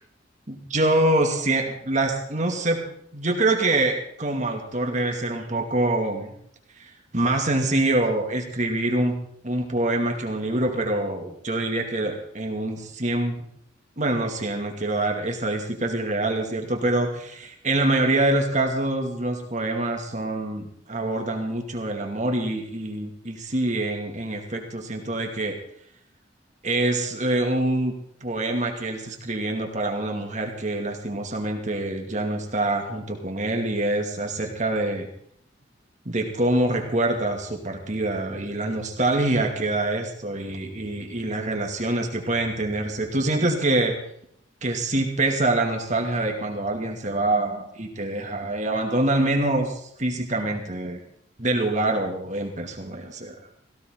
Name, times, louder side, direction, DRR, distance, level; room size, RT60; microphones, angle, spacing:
voice 1, 0.5-2.8 3.1-6.3 6.8-9.2 9.4-13.5 14.0-25.6 26.6-27.9 28.2-35.1 36.0-44.0 44.6-51.0 51.4-53.3, right 2 dB, 40° right, 3 dB, 2.4 m, -25 dB
17.5 x 17.0 x 3.9 m, 0.66 s
head